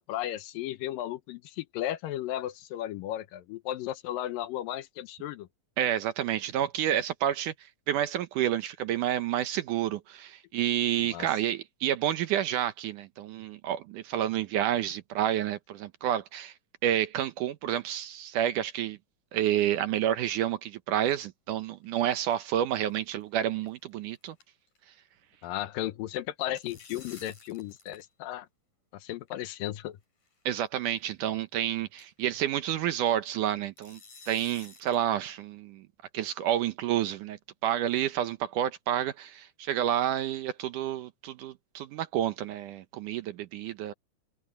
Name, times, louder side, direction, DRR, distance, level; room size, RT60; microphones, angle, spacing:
voice 1, 0.0-5.5 11.0-11.3 25.4-28.5 28.9-30.0, left 13 dB, 80° left, 2.4 m, -35 dB
voice 2, 5.8-16.5 16.8-19.0 19.3-24.4 30.5-34.0 34.3-35.9 36.1-43.9, right 11 dB, 70° right, 2.2 m, -29 dB
sound 1, 21.7-22.5 22.8-22.9 23.2-23.3 23.7-23.9 24.2-25.0 25.2-25.5 26.3-28.1 28.3-28.4 29.3-29.4 30.2-30.4 30.9-31.0 31.4-31.5 32.0-32.3 33.8-35.1, left 4 dB, 55° left, 7.5 m, -52 dB
omnidirectional pair, 4.2 m